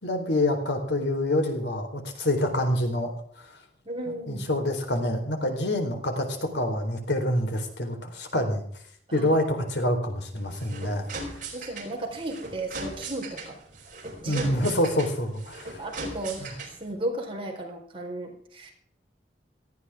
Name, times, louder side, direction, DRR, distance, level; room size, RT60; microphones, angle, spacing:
voice 1, 0.0-3.1 4.3-8.7 9.1-11.1 14.3-15.8 16.4-16.5, left 1 dB, 90° left, 4 dB, 4.1 m, -26 dB
voice 2, 3.9-4.4 9.1-9.3 11.5-13.6 14.2-14.5 15.8-18.7, right 1 dB, 30° right, 2 dB, 4.4 m, -34 dB
sound 1, 10.4-16.9, right 2 dB, 50° right, 4.7 m, -39 dB
18.0 x 14.5 x 3.7 m, 0.62 s
head